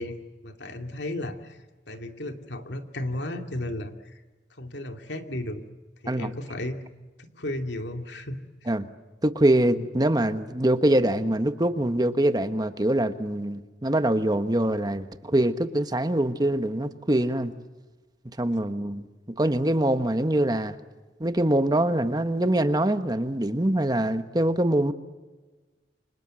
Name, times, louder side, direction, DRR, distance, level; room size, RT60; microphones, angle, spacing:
voice 1, 0.0-1.6 1.9-4.1 4.6-5.6 6.0-6.8 7.3-8.4, left 1 dB, 75° left, 2.7 m, -34 dB
voice 2, 9.2-17.5 18.4-19.1 19.4-20.7 21.2-24.9, right 1 dB, 20° right, 1.3 m, -24 dB
29.5 x 26.0 x 7.7 m
head